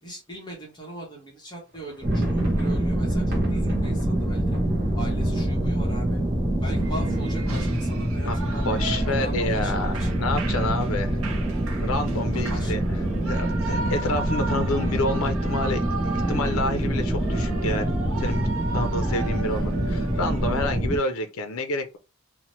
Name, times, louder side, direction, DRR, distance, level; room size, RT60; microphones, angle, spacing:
voice 1, 0.0-4.6 4.9-6.2 6.6-10.1 12.3-12.7, right 1 dB, 20° left, 0.8 m, -40 dB
sound 1, 1.7-9.4 9.7-9.8 10.1-10.3 10.9-11.4, left 1 dB, 45° right, 0.9 m, -40 dB
sound 2, 2.0-21.0, right 1 dB, 15° right, 0.6 m, -25 dB
Shout / Cheering, 6.7-20.6, right 3 dB, 70° right, 0.6 m, -37 dB
voice 2, 8.7-11.2 11.8-12.8 13.2-18.5 18.7-22.0, left 2 dB, 75° left, 0.5 m, -29 dB
2.8 x 2.1 x 2.9 m
head